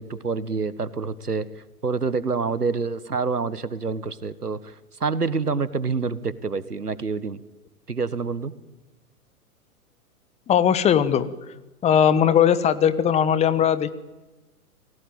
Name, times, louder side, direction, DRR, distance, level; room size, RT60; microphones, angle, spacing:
voice 1, 0.0-1.5 1.8-4.7 5.0-7.4 7.9-8.5, right 4 dB, 80° right, 16 dB, 1.7 m, -27 dB
voice 2, 10.5-11.3 11.8-13.9, left 8 dB, 15° left, 14 dB, 1.2 m, -19 dB
29.5 x 18.5 x 9.3 m, 1.1 s
figure-of-eight pair, 110°, 46 cm